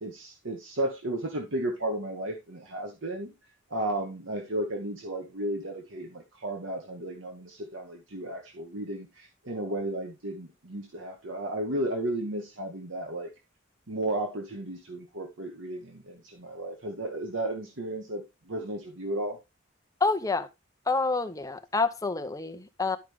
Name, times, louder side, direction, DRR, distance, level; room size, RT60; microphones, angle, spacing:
voice 1, 0.0-3.3 3.7-13.3 13.9-19.4, right 1 dB, 70° right, 1.3 m, -34 dB
voice 2, 20.0-20.5 20.9-23.0, left 3 dB, 15° left, 0.7 m, -28 dB
11.5 x 5.0 x 3.5 m
head